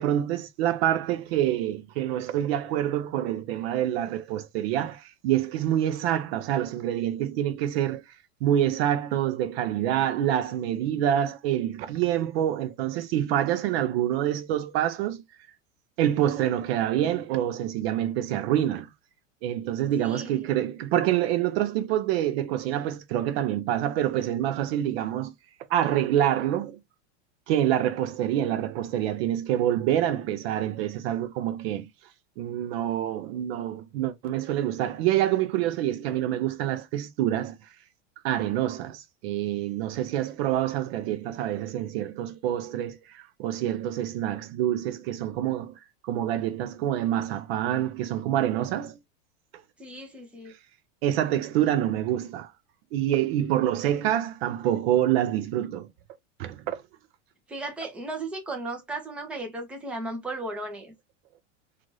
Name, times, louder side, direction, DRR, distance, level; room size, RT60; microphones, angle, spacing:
voice 1, 0.0-8.0 8.4-15.2 16.0-18.9 19.4-25.3 25.7-26.8 27.5-31.9 32.4-37.6 38.2-45.7 46.0-49.0 51.0-52.5 52.9-55.9 56.4-56.8, right 11 dB, 55° right, 0.4 m, -26 dB
voice 2, 20.0-20.4 49.8-50.5 57.5-60.9, right 2 dB, 5° right, 0.5 m, -35 dB
2.6 x 2.5 x 3.0 m
supercardioid pair, 145°, 38 cm